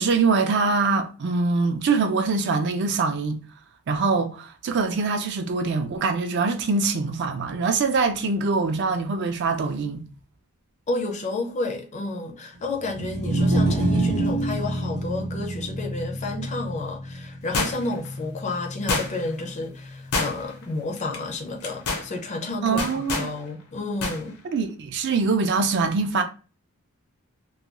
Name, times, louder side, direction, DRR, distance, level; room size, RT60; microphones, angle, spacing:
voice 1, 0.0-3.4 3.9-10.0 22.6-23.3 24.4-26.2, right 4 dB, 55° right, 0.4 m, -23 dB
voice 2, 10.9-24.4, left 2 dB, 35° left, 0.4 m, -31 dB
sound 1, 12.9-19.2, right 1 dB, 90° right, 0.8 m, -27 dB
sound 2, 17.5-18.1 18.9-19.4 20.1-20.6 21.0-21.2 21.6-22.1 22.8-23.3 24.0-24.2 24.5-24.6, left 3 dB, 85° left, 0.6 m, -27 dB
2.3 x 2.2 x 2.9 m
head